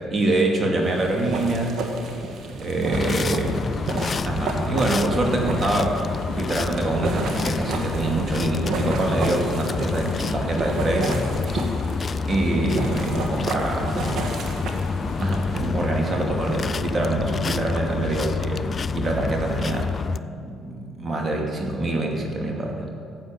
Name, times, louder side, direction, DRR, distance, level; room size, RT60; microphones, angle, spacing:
voice 1, 0.1-1.8 2.6-3.7 4.2-6.0 6.2-11.7 12.3-14.0 14.8-20.0 20.3-22.9, right 2 dB, 35° right, 1 dB, 2.6 m, -25 dB
sound 1, 0.8-15.7, right 2 dB, 65° right, 1.9 m, -31 dB
sound 2, 2.9-20.2, left 5 dB, 40° left, 0.4 m, -28 dB
12.5 x 7.8 x 7.6 m, 2.3 s
supercardioid pair, 70°, 0 cm